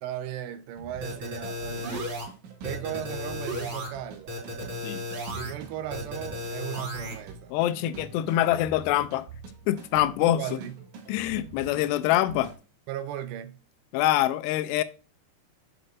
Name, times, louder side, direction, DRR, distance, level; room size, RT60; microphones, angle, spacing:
voice 1, 0.0-2.1 2.6-4.3 5.3-7.5 10.2-10.8 12.9-13.6, right 11 dB, 80° right, 2.8 m, -36 dB
sound 1, 0.7-12.6, right 5 dB, 60° right, 2.4 m, -46 dB
sound 2, 1.0-2.2 2.6-3.9 4.3-5.5 5.9-7.1, left 1 dB, 30° right, 4.0 m, -34 dB
voice 2, 7.5-9.3 9.7-10.4 11.1-12.5 13.9-14.8, left 13 dB, 85° left, 2.7 m, -25 dB
7.7 x 6.6 x 2.4 m
omnidirectional pair, 4.9 m